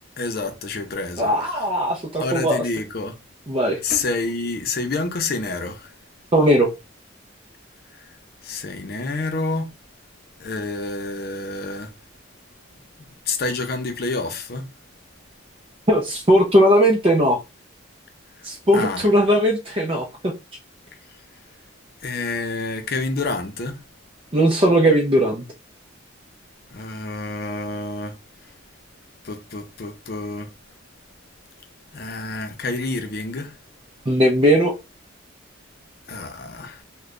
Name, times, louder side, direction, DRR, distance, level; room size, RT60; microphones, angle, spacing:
voice 1, 0.2-1.6 2.2-3.1 3.8-5.9 7.9-8.1 8.4-9.7 10.4-11.9 13.3-14.7 18.4-18.5 18.7-19.1 22.0-23.8 26.7-28.1 29.2-30.5 31.9-33.6 36.1-36.8, left 3 dB, 50° left, 0.6 m, -28 dB
voice 2, 1.2-2.6 3.5-3.8 6.3-6.7 15.9-17.4 18.4-20.3 24.3-25.4 34.1-34.7, equal, 30° right, 0.5 m, -18 dB
3.2 x 2.2 x 3.6 m
head